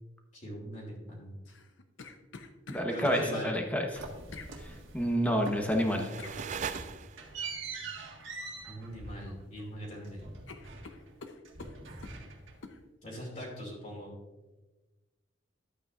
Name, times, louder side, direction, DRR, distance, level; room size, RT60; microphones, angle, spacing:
voice 1, 0.3-1.5 2.9-3.6 8.7-10.3 13.0-14.2, equal, 40° left, -4 dB, 2.7 m, -41 dB
sound 1, 1.5-3.2 4.3-4.5 6.2-6.4 8.4-8.7 9.0-9.7 10.0-10.1 10.5-12.2 12.6-12.8, left 3 dB, 75° left, 0.8 m, -48 dB
voice 2, 2.7-4.0 4.6-6.1, equal, 10° left, 2 dB, 1.1 m, -29 dB
sound 2, 3.9-5.2 5.4-5.9 6.2-11.2 11.4-12.7, right 3 dB, 85° right, 1.7 m, -44 dB
sound 3, 5.1-7.5, right 7 dB, 40° right, 0.3 m, -41 dB
12.0 x 8.5 x 2.5 m, 1.2 s
head